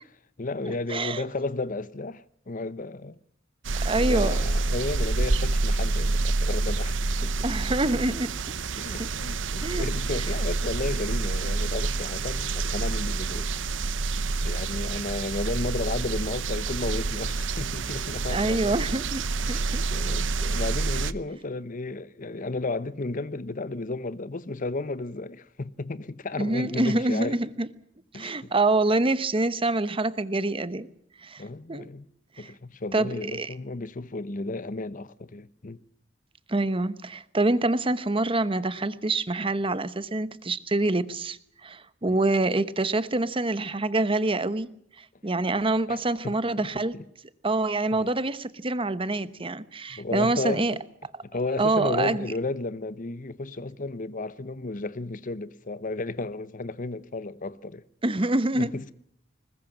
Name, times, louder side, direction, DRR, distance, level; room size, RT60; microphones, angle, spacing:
voice 1, 0.4-3.2 4.0-7.5 8.8-13.5 14.4-18.8 19.5-27.4 28.1-28.5 31.4-32.1 32.4-35.8 42.1-42.2 45.9-46.7 46.9-47.0 47.9-48.1 49.9-50.7 51.3-57.8 58.5-58.9, left 2 dB, 45° left, 0.8 m, -33 dB
voice 2, 0.9-1.2 3.8-4.4 7.4-8.3 9.0-9.1 9.6-9.8 18.3-19.2 19.5-19.8 26.4-27.7 28.1-30.9 31.2-31.4 31.7-31.9 32.4-32.5 32.9-33.5 36.5-44.7 45.0-47.0 47.4-50.7 51.6-52.3 58.0-58.7, right 2 dB, 30° right, 1.0 m, -26 dB
sound 1, 3.6-21.1, right 3 dB, 90° right, 0.8 m, -28 dB
21.0 x 20.5 x 7.4 m
head